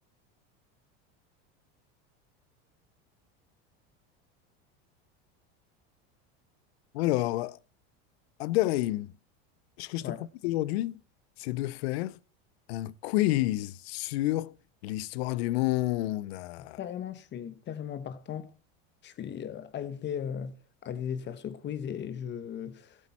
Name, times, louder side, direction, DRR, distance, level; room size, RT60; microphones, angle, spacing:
voice 1, 6.9-7.6 8.4-9.2 9.8-10.1 10.4-11.0 11.4-12.2 12.7-14.5 14.8-16.8, left 17 dB, 80° left, 0.7 m, -29 dB
voice 2, 16.8-18.5 19.0-20.6 20.8-23.0, left 8 dB, 35° left, 1.1 m, -37 dB
15.0 x 8.7 x 4.3 m
supercardioid pair, 120°, 31 cm